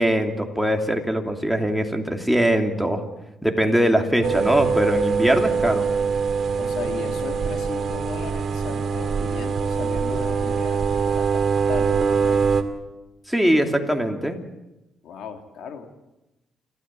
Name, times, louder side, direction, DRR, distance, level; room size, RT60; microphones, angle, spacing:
voice 1, 0.0-3.0 3.4-5.9 13.3-14.4, equal, ahead, 4 dB, 2.9 m, -21 dB
sound 1, 4.2-12.6, right 5 dB, 55° right, 2.1 m, -23 dB
voice 2, 6.6-12.6 15.0-15.9, left 6 dB, 75° left, 5 dB, 2.7 m, -36 dB
29.0 x 13.5 x 7.7 m, 0.96 s
cardioid pair, 90°, 0 cm